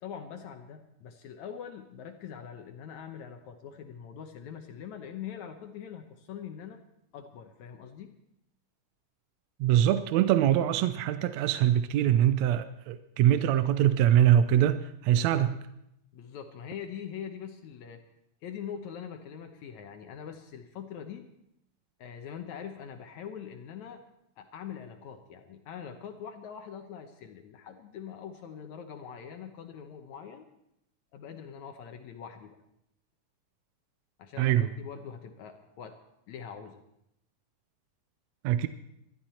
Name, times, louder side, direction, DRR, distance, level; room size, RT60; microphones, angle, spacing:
voice 1, 0.0-6.8 7.1-8.1 15.2-15.4 16.1-18.0 18.4-21.3 22.0-24.0 24.4-30.5 31.1-32.6 34.2-36.0 36.3-36.8, left 8 dB, 70° left, 5 dB, 2.2 m, -43 dB
voice 2, 9.6-15.6 34.4-34.7 38.4-38.7, right 11 dB, 75° right, 11 dB, 1.7 m, -23 dB
21.0 x 13.0 x 4.3 m, 0.79 s
omnidirectional pair, 3.7 m